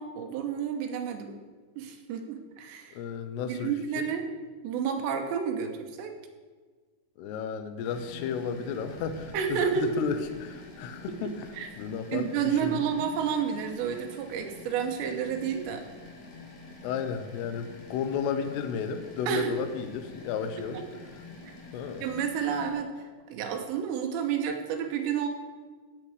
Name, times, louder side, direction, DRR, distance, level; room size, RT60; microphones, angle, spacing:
voice 1, 0.0-1.3 1.8-3.0 3.5-4.3 4.6-6.1 9.3-9.9 11.5-11.7 12.1-15.8 19.3-19.5 20.7-20.8 22.0-22.9 23.3-25.3, right 7 dB, 75° right, 4 dB, 3.0 m, -30 dB
voice 2, 2.9-4.0 7.2-11.5 11.8-12.8 16.8-20.8 21.7-22.1, left 6 dB, 80° left, 9 dB, 2.4 m, -33 dB
sound 1, 7.8-22.7, left 3 dB, 60° left, 1.9 m, -47 dB
17.0 x 7.8 x 4.9 m, 1.5 s
omnidirectional pair, 5.7 m